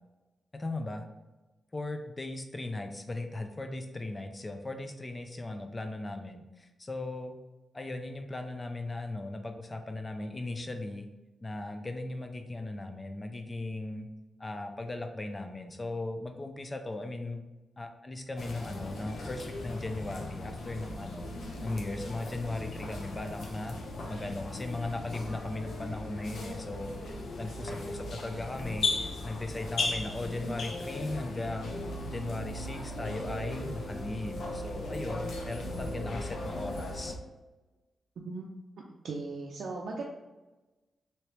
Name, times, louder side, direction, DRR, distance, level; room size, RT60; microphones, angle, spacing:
voice 1, 0.5-1.1 1.7-7.4 7.7-11.1 11.4-14.1 14.4-17.4 17.8-21.3 21.6-23.8 24.1-31.7 32.1-37.2, left 2 dB, 25° left, 6 dB, 0.4 m, -37 dB
sound 1, 18.4-37.1, left 2 dB, 80° left, 0.6 m, -37 dB
voice 2, 39.0-40.0, right 3 dB, 80° right, -2 dB, 0.4 m, -37 dB
3.2 x 2.8 x 2.9 m, 1.1 s
wide cardioid pair, 120°, 0 cm